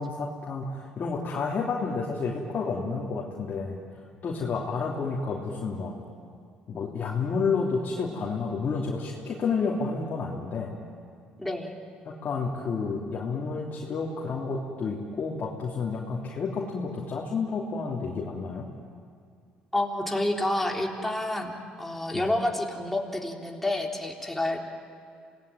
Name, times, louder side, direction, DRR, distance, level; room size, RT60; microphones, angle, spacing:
voice 1, 0.0-3.8 4.2-5.9 6.7-10.7 12.0-18.7 22.1-22.3, left 4 dB, 50° left, -3 dB, 3.2 m, -30 dB
voice 2, 11.4-11.7 19.7-24.6, left 1 dB, 5° left, 0 dB, 3.8 m, -29 dB
27.0 x 18.5 x 9.2 m, 2.3 s
hypercardioid pair, 60°, 4 cm